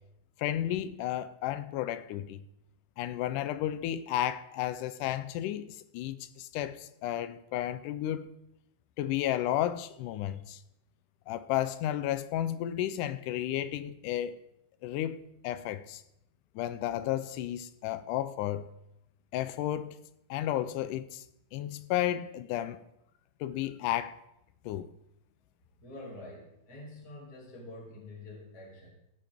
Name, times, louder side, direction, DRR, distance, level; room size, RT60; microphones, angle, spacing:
voice 1, 0.4-2.4 3.0-8.3 9.0-10.6 11.3-14.4 14.8-15.2 15.4-16.0 16.6-18.7 19.3-20.0 20.3-21.2 21.5-22.8 23.4-24.2 24.7-24.9, left 12 dB, 90° left, 2.2 m, -32 dB
voice 2, 25.8-28.9, left 2 dB, 30° left, 3.0 m, -46 dB
15.0 x 9.1 x 3.5 m
omnidirectional pair, 3.5 m